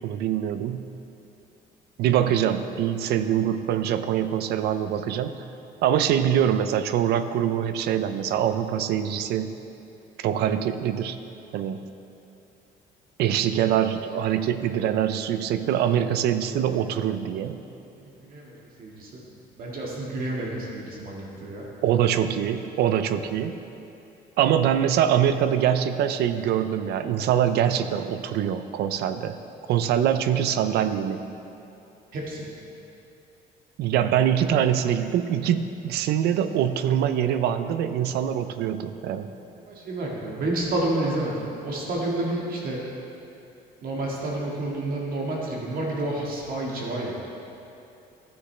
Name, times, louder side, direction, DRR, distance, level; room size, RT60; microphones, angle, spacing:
voice 1, 0.0-0.9 2.0-5.5 5.8-9.5 10.2-11.2 11.5-11.8 13.2-17.6 21.8-23.6 24.4-29.4 29.7-31.2 33.8-39.3, right 9 dB, 75° right, 11 dB, 0.5 m, -24 dB
voice 2, 18.0-19.2 19.6-21.7 32.1-32.5 34.3-34.4 39.6-42.8 43.8-47.1, right 2 dB, 60° right, -3 dB, 1.8 m, -30 dB
15.5 x 6.7 x 3.3 m, 2.8 s
cardioid pair, 110°, 17 cm